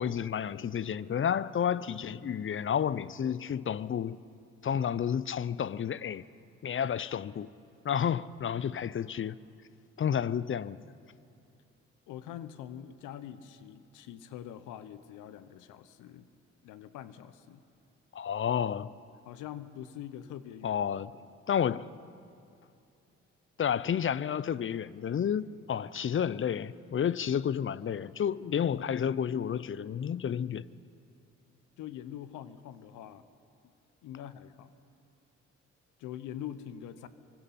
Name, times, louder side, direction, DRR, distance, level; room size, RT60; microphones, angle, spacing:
voice 1, 0.0-4.2 4.6-6.2 6.6-7.5 7.8-9.4 10.0-10.8 18.1-18.9 20.6-21.1 21.5-21.9 23.6-30.6, left 8 dB, 40° left, 0.6 m, -31 dB
voice 2, 12.1-16.3 16.6-17.6 19.2-20.8 31.8-33.3 34.0-34.7 36.0-37.1, left 10 dB, 80° left, 1.0 m, -44 dB
27.5 x 24.0 x 4.3 m
supercardioid pair, 50°, 31 cm